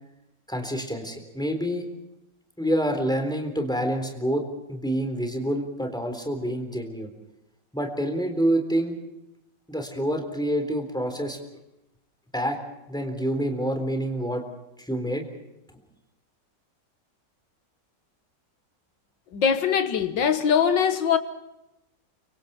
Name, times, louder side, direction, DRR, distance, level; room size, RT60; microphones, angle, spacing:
voice 1, 0.5-1.8 2.6-4.4 4.7-7.1 7.7-9.0 9.7-11.4 12.3-12.6 12.9-14.4 14.8-15.2, equal, ahead, 3.7 m, -27 dB
voice 2, 19.3-21.2, left 7 dB, 80° left, 2.2 m, -22 dB
30.0 x 24.5 x 4.4 m
omnidirectional pair, 1.9 m